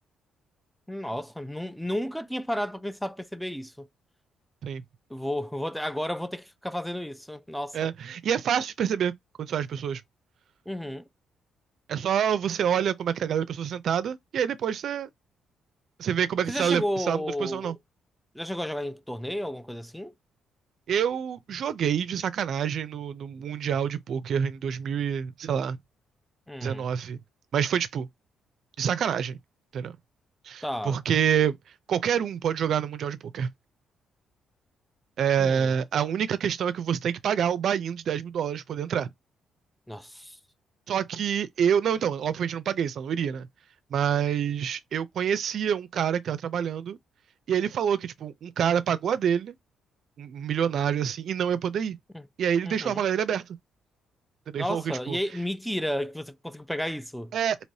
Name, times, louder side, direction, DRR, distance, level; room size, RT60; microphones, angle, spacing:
voice 1, 0.9-3.9 5.1-7.8 10.7-11.1 16.5-17.7 18.3-20.1 26.5-26.9 30.6-31.0 35.4-35.7 39.9-40.4 52.1-52.2 52.6-53.0 54.6-57.3, equal, ahead, 0.3 m, -32 dB
voice 2, 7.7-9.1 9.4-10.0 11.9-15.1 16.0-17.8 20.9-25.8 26.6-27.2 27.5-28.1 28.8-29.4 29.7-29.9 30.4-31.6 31.9-33.5 35.2-39.1 40.9-43.5 43.9-47.0 47.5-49.5 50.2-52.0 52.4-53.4 54.5-55.2 57.3-57.6, right 8 dB, 65° right, 0.4 m, -27 dB
3.2 x 2.8 x 2.7 m
cardioid pair, 90°, 0 cm